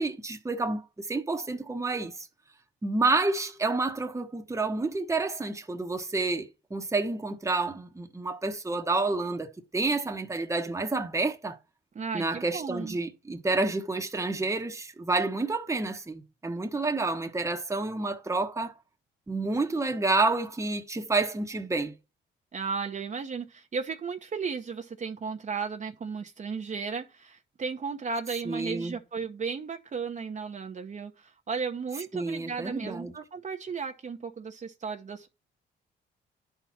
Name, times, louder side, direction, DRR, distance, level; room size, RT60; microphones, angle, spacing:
voice 1, 0.0-2.1 2.8-9.5 9.7-11.6 12.1-18.7 19.3-21.9 28.4-29.0 32.1-33.1, right 3 dB, 15° right, 1.2 m, -29 dB
voice 2, 11.9-13.0 22.5-35.3, right 5 dB, 40° right, 1.0 m, -35 dB
10.5 x 4.4 x 5.9 m
cardioid pair, 90°, 20 cm